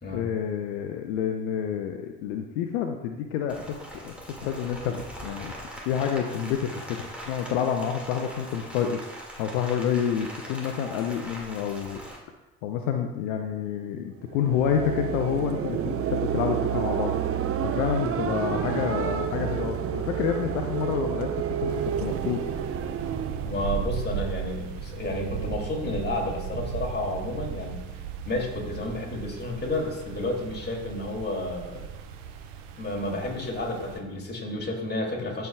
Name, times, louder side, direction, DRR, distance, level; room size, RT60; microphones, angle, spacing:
voice 1, 0.1-3.8 4.0-5.5 5.9-9.0 9.4-12.0 12.6-17.1 17.6-21.3 21.6-21.7 22.0-22.4, left 8 dB, 75° left, 5 dB, 0.6 m, -28 dB
Rain, 3.5-12.2, equal, 5° right, 2.0 m, -41 dB
sound 1, 14.3-23.6, right 9 dB, 35° right, 0.6 m, -29 dB
sound 2, 21.7-34.0, right 7 dB, 80° right, 0.8 m, -36 dB
voice 2, 23.4-27.8 28.3-31.9 32.8-35.5, left 1 dB, 25° left, -1 dB, 2.4 m, -31 dB
13.5 x 4.6 x 2.3 m, 1.1 s
hypercardioid pair, 55°, 38 cm